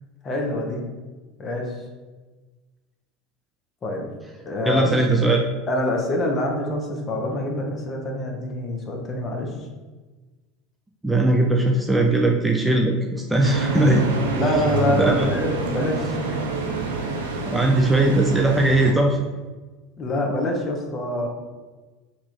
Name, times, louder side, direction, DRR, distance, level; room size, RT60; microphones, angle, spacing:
voice 1, 0.2-0.8 1.4-1.8 3.8-4.1 4.4-4.9 5.7-9.5 14.3-16.5 17.0-17.3 20.0-21.3, left 1 dB, 35° left, 1 dB, 0.8 m, -25 dB
voice 2, 4.7-5.4 11.0-14.1 14.9-15.3 17.5-19.2, right 2 dB, 10° right, 0 dB, 0.4 m, -19 dB
sound 1, 13.4-18.9, right 4 dB, 90° right, 0.5 m, -27 dB
2.9 x 2.4 x 4.2 m, 1.3 s
hypercardioid pair, 90°, 0 cm